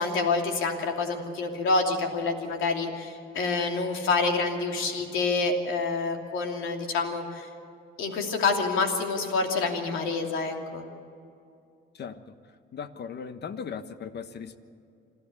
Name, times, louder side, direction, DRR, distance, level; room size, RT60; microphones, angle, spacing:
voice 1, 0.0-7.5 8.0-10.8, left 3 dB, 85° left, 3 dB, 2.8 m, -27 dB
voice 2, 12.7-14.6, left 6 dB, 60° left, 10 dB, 1.3 m, -37 dB
27.0 x 13.5 x 8.5 m, 2.5 s
cardioid pair, 90°, 20 cm